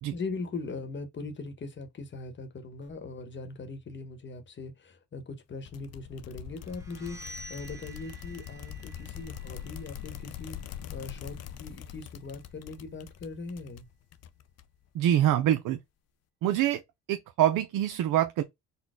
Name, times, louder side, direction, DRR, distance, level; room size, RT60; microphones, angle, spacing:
voice 1, 0.1-13.9, left 3 dB, 35° left, 1.1 m, -40 dB
sound 1, 5.7-14.9, left 10 dB, 50° left, 0.5 m, -43 dB
sound 2, 6.6-12.3, equal, 10° right, 1.0 m, -51 dB
voice 2, 14.9-15.8 16.4-16.8 17.1-18.4, right 12 dB, 65° right, 0.6 m, -25 dB
4.2 x 2.2 x 3.6 m
cardioid pair, 100°, 34 cm